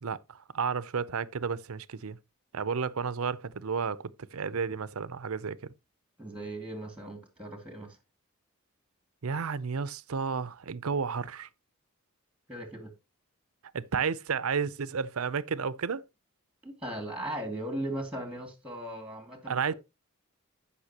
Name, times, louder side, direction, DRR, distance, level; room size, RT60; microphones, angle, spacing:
voice 1, 0.0-2.2 2.5-5.7 9.2-11.5 13.7-16.0 19.5-19.7, right 6 dB, 85° right, 0.6 m, -32 dB
voice 2, 6.2-8.0 12.5-12.9 16.6-19.7, right 1 dB, 5° right, 2.1 m, -38 dB
15.0 x 5.6 x 2.9 m
head